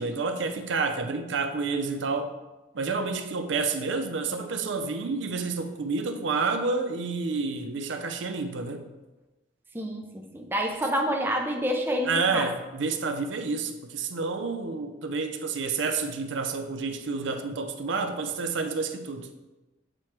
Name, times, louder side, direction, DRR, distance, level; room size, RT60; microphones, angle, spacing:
voice 1, 0.0-2.4 2.7-8.9 12.1-19.3, right 4 dB, 70° right, 0.5 m, -29 dB
voice 2, 9.7-12.5, equal, 10° right, 0.5 m, -28 dB
7.5 x 4.4 x 3.2 m
head